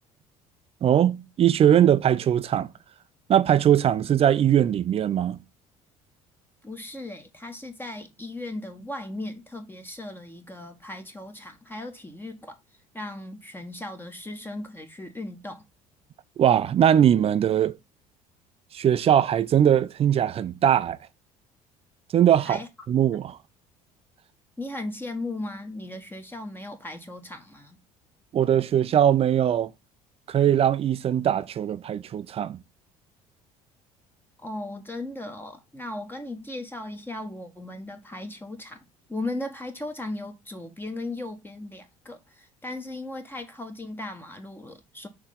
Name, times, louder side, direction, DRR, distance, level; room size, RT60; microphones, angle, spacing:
voice 1, 0.8-2.7 3.3-5.4 16.4-17.8 18.7-21.0 22.1-22.6 22.9-23.4 28.3-29.7 30.3-32.6, right 10 dB, 30° right, 0.5 m, -21 dB
voice 2, 6.6-12.6 12.9-15.6 22.4-22.7 24.6-27.8 34.4-38.8 39.1-45.1, left 2 dB, 10° left, 1.2 m, -37 dB
6.3 x 3.1 x 5.2 m
figure-of-eight pair, 55°, 19 cm